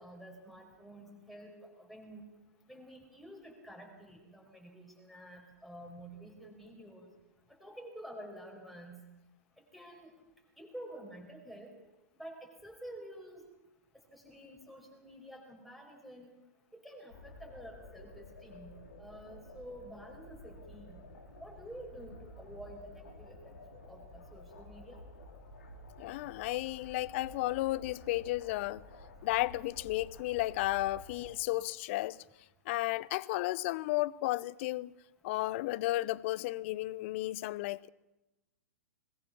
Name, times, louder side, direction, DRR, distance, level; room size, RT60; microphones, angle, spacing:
voice 1, 0.0-2.2 2.7-7.1 7.5-9.0 9.7-10.1 10.6-11.7 12.2-13.4 14.1-16.3 16.7-18.7 19.0-21.0 21.4-23.5 23.9-25.0, right 1 dB, ahead, 5.2 m, -49 dB
sound 1, 17.1-31.3, left 2 dB, 65° left, 4.0 m, -52 dB
voice 2, 26.0-28.8 29.2-32.2 32.7-34.9 35.2-37.9, left 18 dB, 45° left, 0.7 m, -33 dB
21.5 x 20.0 x 6.3 m
figure-of-eight pair, 105°, 9 cm